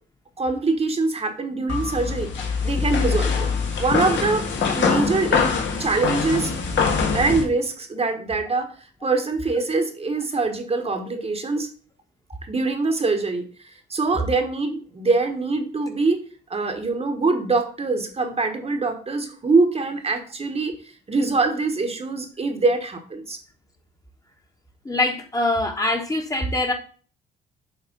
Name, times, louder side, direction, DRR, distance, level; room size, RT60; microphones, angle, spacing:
voice 1, 0.4-3.5 3.8-4.4 4.8-5.5 5.8-6.5 7.1-8.7 9.0-11.7 12.5-13.4 13.9-16.2 16.5-20.8 21.1-23.4, right 3 dB, 30° right, 5 dB, 1.2 m, -23 dB
sound 1, 1.7-7.4, left 5 dB, 70° left, 1.5 m, -23 dB
voice 2, 24.8-26.7, left 2 dB, 15° left, 4 dB, 1.2 m, -23 dB
7.2 x 3.2 x 5.3 m, 0.40 s
cardioid pair, 90°, 20 cm